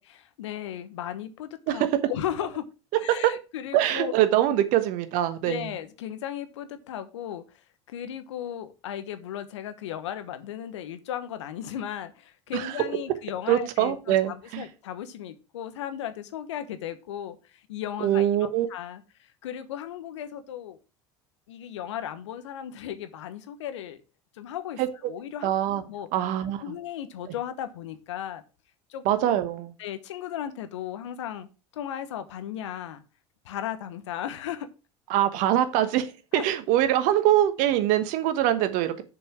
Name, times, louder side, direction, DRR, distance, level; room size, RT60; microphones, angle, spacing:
voice 1, 0.4-2.6 2.9-4.1 4.5-4.6 5.4-7.4 7.9-19.0 19.4-20.8 21.5-24.0 24.3-25.5 25.9-26.1 26.6-28.4 28.9-29.4 29.8-31.5 31.7-33.0 33.4-34.7 36.3-36.4, left 10 dB, 80° left, 1.1 m, -36 dB
voice 2, 3.7-5.7 12.5-12.7 13.5-14.6 18.0-18.7 24.8-24.9 25.4-25.8 26.1-26.6 29.0-29.7 35.1-36.1 36.3-39.0, right 12 dB, 60° right, 1.3 m, -23 dB
6.8 x 5.3 x 6.0 m
hypercardioid pair, 75°, 15 cm